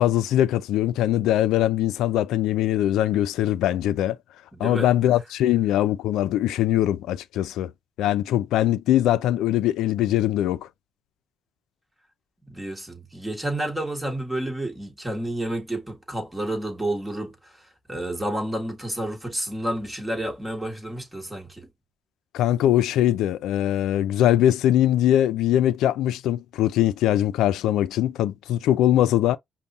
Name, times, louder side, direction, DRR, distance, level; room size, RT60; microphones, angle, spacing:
voice 1, 0.0-4.2 4.6-7.7 8.0-10.7 22.3-29.4, left 12 dB, 85° left, 0.4 m, -22 dB
voice 2, 4.5-4.9 12.5-21.7, right 1 dB, 10° right, 1.6 m, -30 dB
5.4 x 2.3 x 2.7 m
cardioid pair, 90°, 0 cm